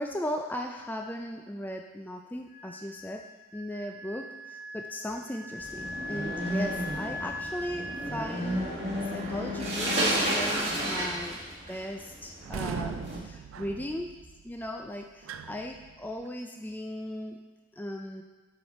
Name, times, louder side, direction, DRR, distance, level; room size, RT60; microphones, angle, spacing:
voice 1, 0.0-3.2 3.5-8.8 9.1-11.4 11.7-14.1 14.4-17.4 17.7-18.2, left 1 dB, 10° left, 3 dB, 0.3 m, -37 dB
Wind instrument woodwind instrument, 2.5-10.8, left 2 dB, 30° left, 1.7 m, -42 dB
sound 1, 5.6-13.2, right 1 dB, 30° right, 1.4 m, -32 dB
sound 2, 12.4-16.3, right 6 dB, 80° right, 0.3 m, -40 dB
7.2 x 4.9 x 4.2 m, 1.3 s
head